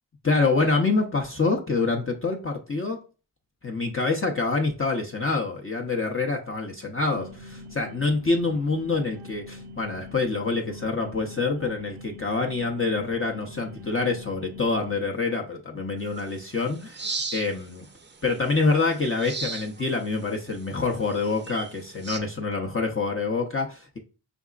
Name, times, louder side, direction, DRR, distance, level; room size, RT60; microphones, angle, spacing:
voice 1, 0.2-3.0 3.6-17.0 17.3-17.8 18.2-24.0, left 3 dB, 30° left, 0 dB, 0.7 m, -26 dB
sound 1, 7.0-15.1, left 1 dB, 85° right, 0.6 m, -44 dB
sound 2, 16.0-22.2, right 4 dB, 25° right, 0.6 m, -38 dB
4.9 x 3.4 x 2.4 m, 0.35 s
cardioid pair, 65°, 46 cm